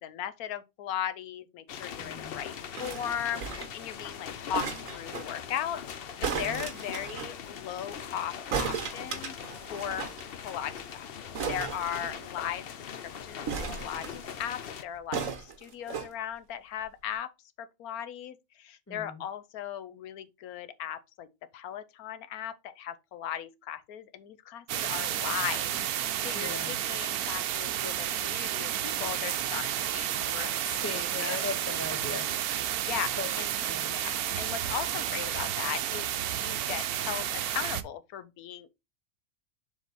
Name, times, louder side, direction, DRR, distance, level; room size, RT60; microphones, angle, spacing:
voice 1, 0.0-2.5 2.8-5.8 6.4-9.3 9.7-10.1 10.4-13.5 13.8-17.3 17.6-21.3 21.5-25.7 26.2-30.8 31.2-31.4 32.9-33.5 33.9-38.9, left 10 dB, 80° left, 1.2 m, -37 dB
sound 1, 1.7-14.8, left 8 dB, 55° left, 0.7 m, -41 dB
voice 2, 2.0-2.4 6.3-6.6 18.9-19.2 26.3-26.7 30.7-32.3 33.2-33.3 33.7-33.9, left 3 dB, 15° left, 0.7 m, -38 dB
sound 2, 2.7-3.8 4.5-5.3 6.2-7.3 8.5-10.2 10.5-10.6 10.8-10.9 11.3-12.5 13.5-14.4 15.1-16.1 16.8-16.9, right 6 dB, 65° right, 1.5 m, -35 dB
sound 3, 24.7-37.8, right 11 dB, 85° right, 1.2 m, -31 dB
7.2 x 3.8 x 4.1 m
omnidirectional pair, 1.6 m